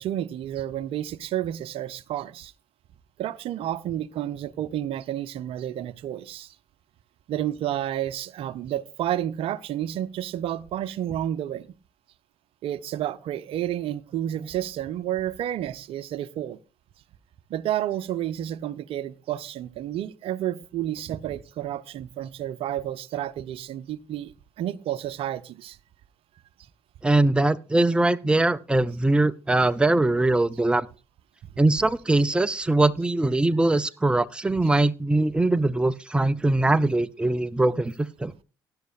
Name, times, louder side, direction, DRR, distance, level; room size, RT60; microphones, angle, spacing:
voice 1, 0.0-2.5 3.2-6.6 7.3-11.7 12.6-16.6 17.5-25.8, right 11 dB, 55° right, 0.7 m, -30 dB
voice 2, 27.0-30.9 31.6-38.3, right 2 dB, 10° right, 0.6 m, -22 dB
19.0 x 10.5 x 2.5 m
figure-of-eight pair, 50°, 11 cm